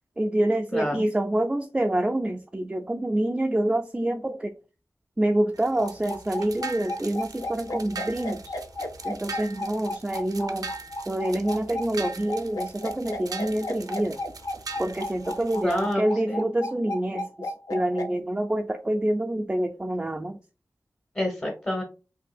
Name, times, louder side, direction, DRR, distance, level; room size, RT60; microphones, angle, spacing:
voice 1, 0.2-4.6 5.2-8.6 9.0-10.7 11.1-14.2 14.8-20.4, right 1 dB, 15° right, 0.3 m, -27 dB
voice 2, 0.7-1.0 15.6-16.4 21.1-21.8, left 1 dB, 25° left, 1.0 m, -28 dB
sound 1, 5.5-15.9, right 4 dB, 80° right, 0.6 m, -41 dB
sound 2, 5.8-18.1, left 1 dB, 70° left, 0.6 m, -33 dB
5.2 x 2.8 x 2.3 m
wide cardioid pair, 80°, 6 cm